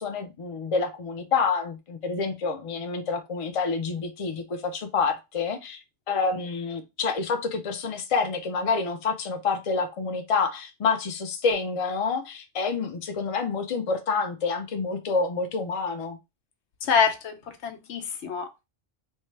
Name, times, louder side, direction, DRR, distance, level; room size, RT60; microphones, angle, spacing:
voice 1, 0.0-5.8 6.1-16.2, left 4 dB, 45° left, 0.5 m, -28 dB
voice 2, 16.8-17.3 17.6-18.6, left 6 dB, 80° left, 1.0 m, -25 dB
3.6 x 2.2 x 3.2 m
omnidirectional pair, 1.2 m